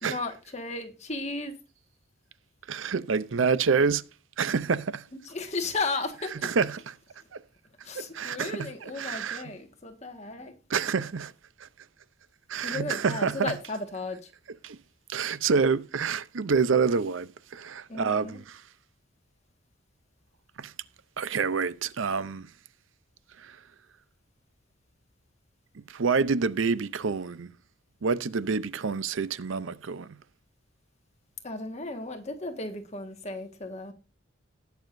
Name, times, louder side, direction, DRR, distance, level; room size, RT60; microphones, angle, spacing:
voice 1, 0.0-1.6 5.2-6.5 7.8-10.6 12.6-14.2 17.9-18.4 31.4-33.9, left 3 dB, 35° left, 1.7 m, -35 dB
voice 2, 2.7-4.0 4.4-5.0 6.4-6.9 8.0-8.7 9.0-9.4 10.7-11.3 11.6-11.7 12.5-13.5 14.6-14.8 15.1-18.6 20.6-20.7 21.2-22.5 23.4-23.6 25.9-27.5 28.0-30.1, right 5 dB, 75° right, 0.6 m, -27 dB
19.5 x 7.0 x 2.6 m
head